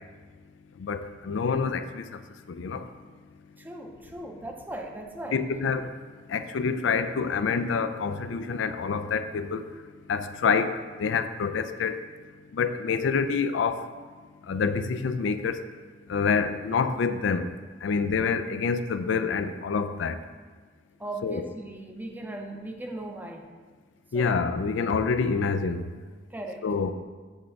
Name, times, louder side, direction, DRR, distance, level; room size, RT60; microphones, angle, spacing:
voice 1, 0.8-2.1 2.5-2.9 5.3-5.9 6.3-9.7 10.1-12.0 12.5-13.8 14.5-15.6 16.1-17.5 17.8-20.2 21.2-21.5 24.1-25.8 26.6-26.9, left 5 dB, 85° left, 10 dB, 0.4 m, -27 dB
voice 2, 3.6-5.4 21.0-23.5 24.1-24.4 26.3-26.6, right 1 dB, 10° right, 2 dB, 0.6 m, -38 dB
7.9 x 3.5 x 5.2 m, 1.4 s
head